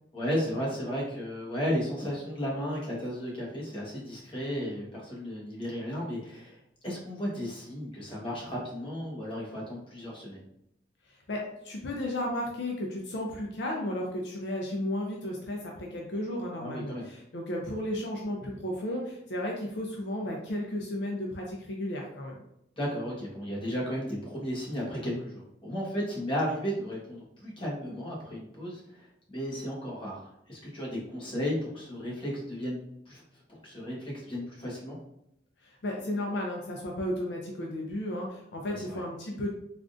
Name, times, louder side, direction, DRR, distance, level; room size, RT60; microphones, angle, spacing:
voice 1, 0.1-6.6 6.8-10.4 16.6-17.0 22.8-30.2 30.5-32.8 33.1-33.2 33.5-35.0 38.6-39.0, equal, 30° left, -5 dB, 1.1 m, -34 dB
voice 2, 11.1-22.4 35.6-39.6, left 1 dB, 70° left, -1 dB, 0.5 m, -34 dB
3.5 x 2.4 x 2.4 m, 0.78 s
head